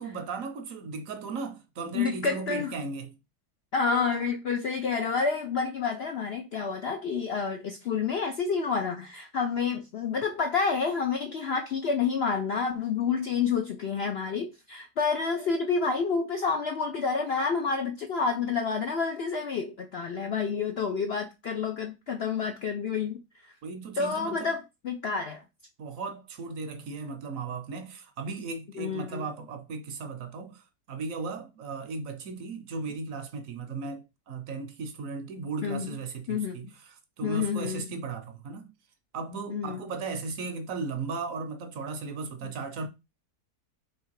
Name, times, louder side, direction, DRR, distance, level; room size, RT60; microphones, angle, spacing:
voice 1, 0.0-3.2 23.6-24.5 25.8-36.7 37.2-38.7 39.1-42.9, right 4 dB, 65° right, 1.0 m, -36 dB
voice 2, 1.9-2.7 3.7-23.2 24.0-25.4 28.8-29.3 35.6-35.9 36.3-36.6 37.2-37.9 39.5-39.8, left 5 dB, 65° left, 0.6 m, -29 dB
3.6 x 3.2 x 4.6 m
omnidirectional pair, 1.7 m